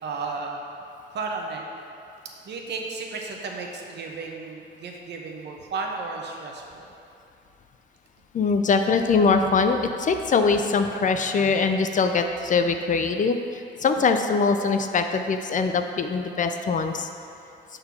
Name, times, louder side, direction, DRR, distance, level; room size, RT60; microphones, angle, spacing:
voice 1, 0.0-0.6 1.1-1.6 2.5-6.9, right 4 dB, 60° right, 1 dB, 1.0 m, -33 dB
voice 2, 8.3-17.1, left 4 dB, 40° left, 6 dB, 0.4 m, -22 dB
6.6 x 3.9 x 5.8 m, 2.7 s
cardioid pair, 90°, 20 cm